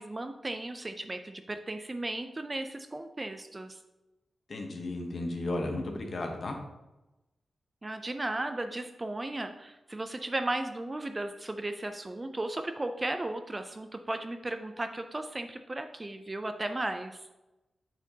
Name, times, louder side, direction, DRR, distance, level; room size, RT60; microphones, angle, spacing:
voice 1, 0.0-3.8 7.8-17.2, right 2 dB, 20° right, 7 dB, 0.3 m, -35 dB
voice 2, 4.5-6.6, left 2 dB, 45° left, 2 dB, 1.0 m, -34 dB
8.9 x 4.3 x 2.7 m, 1.0 s
wide cardioid pair, 150°, 0 cm